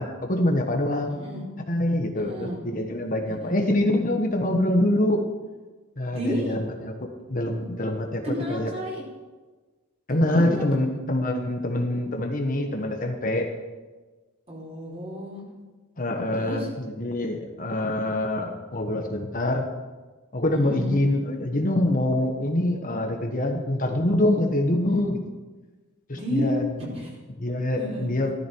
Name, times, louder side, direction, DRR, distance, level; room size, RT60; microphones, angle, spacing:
voice 1, 0.0-1.2 1.7-5.2 6.0-8.2 8.5-8.7 10.1-13.5 16.0-19.6 20.3-25.2 26.1-26.6 27.4-28.3, left 1 dB, 40° left, 3 dB, 1.4 m, -25 dB
voice 2, 1.1-1.4 2.1-2.6 3.3-3.7 6.1-6.5 8.2-9.0 10.1-10.6 14.5-15.4 16.3-16.7 20.5-20.9 24.8-25.0 26.1-26.6 26.9-27.2 27.8-28.1, equal, 30° right, -4 dB, 5.0 m, -32 dB
16.0 x 14.0 x 4.7 m, 1.3 s
head